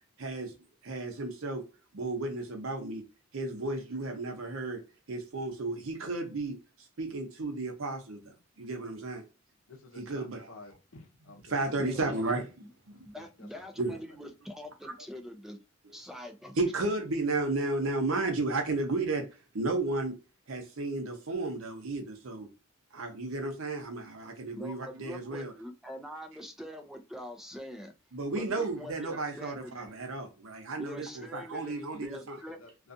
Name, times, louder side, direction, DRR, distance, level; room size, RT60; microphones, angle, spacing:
voice 1, 0.2-0.5 0.8-1.6 1.9-3.0 3.3-4.8 5.1-9.2 10.0-10.5 11.5-12.5 12.9-13.0 13.8-14.0 14.8-14.9 16.6-20.2 20.5-22.5 22.9-25.5 28.1-32.4, right 2 dB, 80° right, 0.7 m, -33 dB
voice 2, 4.0-4.5 9.7-12.2 12.9-13.7 32.5-32.9, left 2 dB, 80° left, 0.7 m, -52 dB
voice 3, 11.8-12.1 12.6-12.7 13.0-15.6 15.9-16.6 24.6-27.9 28.3-29.9 30.8-32.6, equal, ahead, 0.4 m, -44 dB
2.4 x 2.3 x 2.6 m
head